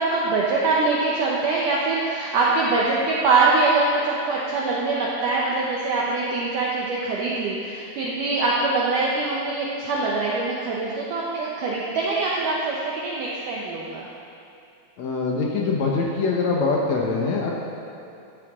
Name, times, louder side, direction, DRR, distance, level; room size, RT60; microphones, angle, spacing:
voice 1, 0.0-14.1, right 3 dB, 70° right, -4 dB, 2.1 m, -23 dB
voice 2, 15.0-17.5, left 4 dB, 75° left, -2 dB, 1.6 m, -23 dB
14.0 x 11.5 x 3.7 m, 2.8 s
omnidirectional pair, 4.9 m